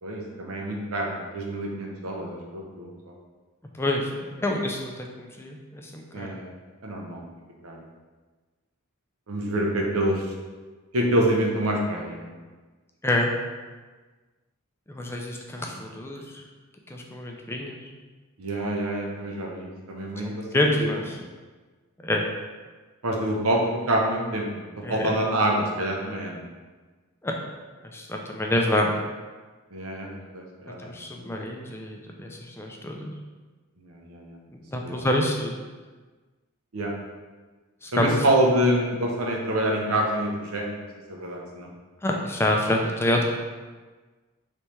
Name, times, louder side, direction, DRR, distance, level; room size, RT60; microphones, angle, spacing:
voice 1, 0.0-2.9 6.1-6.5 6.8-7.2 7.6-7.8 9.3-10.3 10.9-12.3 15.6-15.8 18.4-20.9 23.0-24.6 24.9-26.4 29.7-30.9 33.8-34.4 34.8-35.0 36.7-36.9 37.9-41.7, right 1 dB, 75° right, -1 dB, 0.8 m, -26 dB
voice 2, 3.7-6.3 13.0-13.3 14.9-16.2 16.9-17.8 20.2-21.2 22.0-22.2 24.8-25.0 27.2-27.3 27.9-29.0 30.8-33.1 34.5-35.5 37.8-38.1 42.0-43.2, left 1 dB, 10° left, 1 dB, 0.4 m, -27 dB
3.4 x 3.2 x 4.2 m, 1.4 s
head